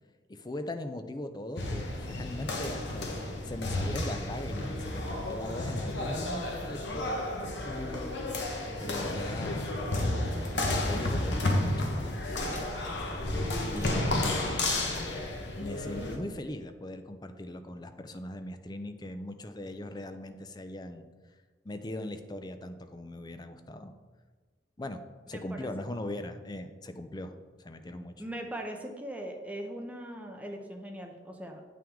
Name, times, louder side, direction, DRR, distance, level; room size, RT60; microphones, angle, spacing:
voice 1, 0.3-8.1 8.8-9.9 10.8-12.4 13.6-14.2 15.6-21.1 21.6-23.9 24.8-25.0 25.3-27.3 27.6-28.1, left 1 dB, 20° left, 8 dB, 0.5 m, -40 dB
sound 1, 1.6-16.2, left 1 dB, 65° left, 1.2 m, -32 dB
sound 2, 9.8-10.8 11.2-11.3 12.2-16.5, equal, 45° left, 1.3 m, -42 dB
voice 2, 25.3-25.7 28.2-31.6, right 1 dB, 10° right, 2 dB, 0.7 m, -40 dB
8.6 x 5.9 x 3.7 m, 1.4 s
head